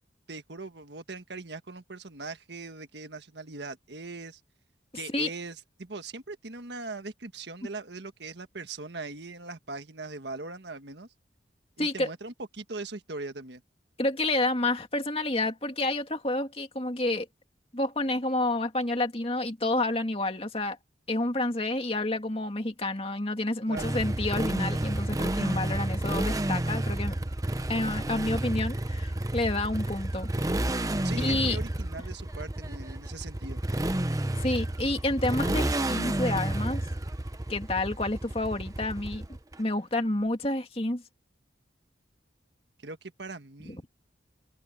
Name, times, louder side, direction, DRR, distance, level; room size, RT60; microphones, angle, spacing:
voice 1, 0.3-4.4 4.9-11.1 11.8-13.6 23.7-23.9 31.0-33.6 42.8-43.8, right 3 dB, 70° right, 1.5 m, -40 dB
voice 2, 11.8-12.1 14.0-17.3 17.7-20.8 21.1-27.2 27.7-30.3 30.7-30.8 31.2-31.6 34.4-36.9 37.5-39.3 39.6-41.0 43.7-43.8, left 2 dB, 30° left, 2.3 m, -29 dB
Motorcycle, 23.8-39.5, right 1 dB, 20° right, 0.8 m, -30 dB
open air
head